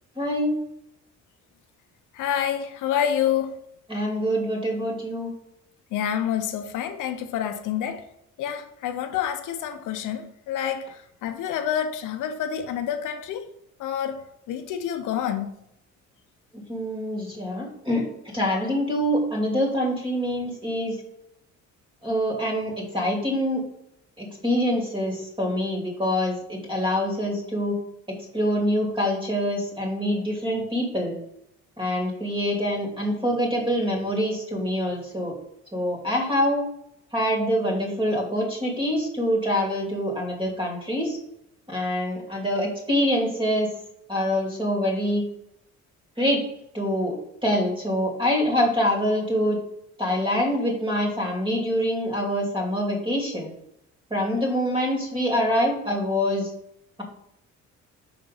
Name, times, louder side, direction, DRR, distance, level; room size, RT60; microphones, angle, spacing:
voice 1, 0.2-0.6 3.9-5.3 16.5-18.1 18.3-21.0 22.0-23.6 24.2-27.8 28.1-31.2 31.8-35.3 35.7-36.6 37.1-41.2 41.7-43.7 44.1-45.2 46.2-46.4 46.8-47.2 47.4-49.6 50.0-53.5 54.1-56.5, equal, 15° right, 2.6 m, -25 dB
voice 2, 2.1-3.5 5.9-8.1 8.4-13.5 13.8-15.5, left 9 dB, 85° left, 0.7 m, -28 dB
5.9 x 4.0 x 5.3 m
cardioid pair, 90°, 30 cm